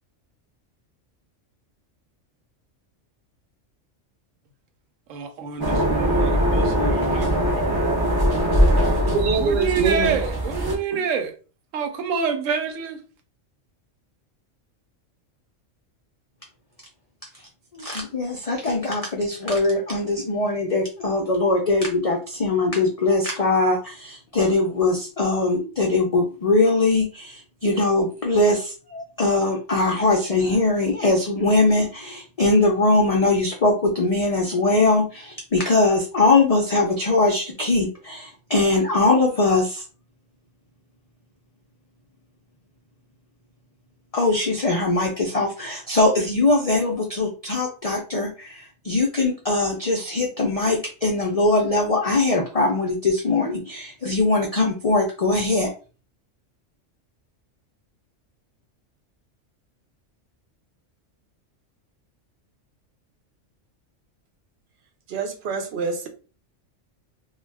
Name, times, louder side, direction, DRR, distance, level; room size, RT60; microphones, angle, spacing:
voice 1, 5.1-7.8 9.4-11.3 11.7-13.0, right 5 dB, 85° right, 1.0 m, -27 dB
sound 1, 5.6-10.7, equal, 40° right, 0.3 m, -21 dB
voice 2, 9.1-10.2 10.7-11.0 65.1-66.1, right 5 dB, 65° right, 0.7 m, -25 dB
voice 3, 17.7-39.8 44.1-55.7, left 2 dB, 65° left, 0.3 m, -21 dB
2.3 x 2.3 x 3.2 m
omnidirectional pair, 1.3 m